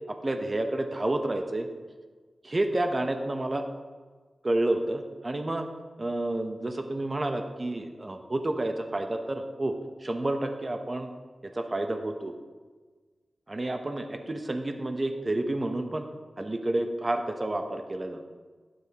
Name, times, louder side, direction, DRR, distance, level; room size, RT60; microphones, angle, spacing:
voice 1, 0.1-1.7 2.4-3.7 4.4-5.7 6.0-9.7 10.0-11.1 11.4-12.3 13.5-16.0 16.4-18.2, right 1 dB, 30° right, 6 dB, 0.8 m, -30 dB
11.5 x 9.6 x 2.9 m, 1.4 s
wide cardioid pair, 100°, 0 cm